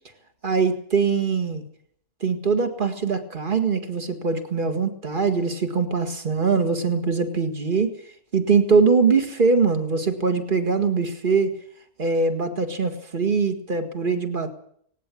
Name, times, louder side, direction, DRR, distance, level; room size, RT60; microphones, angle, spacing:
voice 1, 0.4-1.6 2.2-7.9 8.3-11.5 12.0-14.5, right 5 dB, 30° right, 8 dB, 2.0 m, -22 dB
18.0 x 17.5 x 8.4 m, 0.66 s
omnidirectional pair, 1.7 m